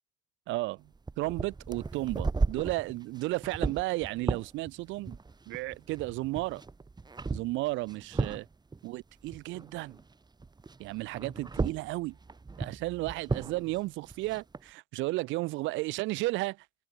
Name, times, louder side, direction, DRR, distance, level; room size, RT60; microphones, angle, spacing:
voice 1, 0.5-0.9 1.2-5.2 5.5-6.6 7.3-8.5 8.8-10.0 10.8-12.2 12.6-16.7, right 20 dB, 70° right, 4.2 m, -33 dB
sound 1, 0.9-10.1 10.4-14.6, right 3 dB, 20° right, 2.3 m, -36 dB
open air
hypercardioid pair, 70°, 20 cm